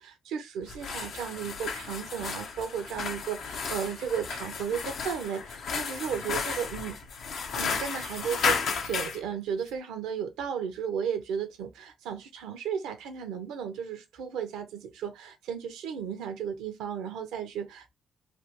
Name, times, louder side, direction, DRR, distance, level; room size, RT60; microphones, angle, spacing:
voice 1, 0.0-7.0 7.6-17.9, right 7 dB, 80° right, 0.7 m, -34 dB
sound 1, 0.6-9.2, left 5 dB, 70° left, 0.7 m, -33 dB
3.3 x 2.4 x 2.9 m
supercardioid pair, 55°, 0 cm